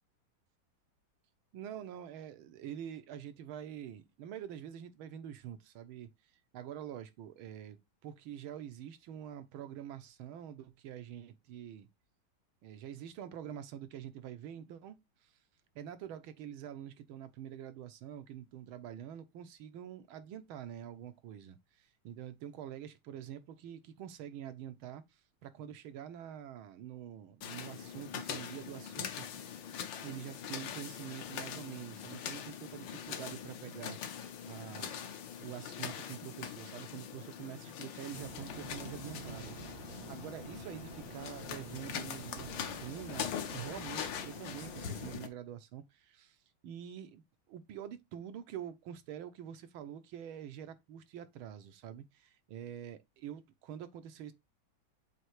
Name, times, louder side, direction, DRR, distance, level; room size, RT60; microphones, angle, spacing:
voice 1, 1.5-6.1 6.5-11.9 12.6-15.0 15.2-15.3 15.8-29.3 30.0-34.2 34.5-35.1 35.4-46.4 46.6-54.3, right 10 dB, 80° right, 1.6 m, -46 dB
sound 1, 27.4-45.3, left 8 dB, 65° left, 1.5 m, -42 dB
sound 2, 38.1-45.1, right 4 dB, 50° right, 0.7 m, -49 dB
7.7 x 2.8 x 4.7 m
omnidirectional pair, 2.3 m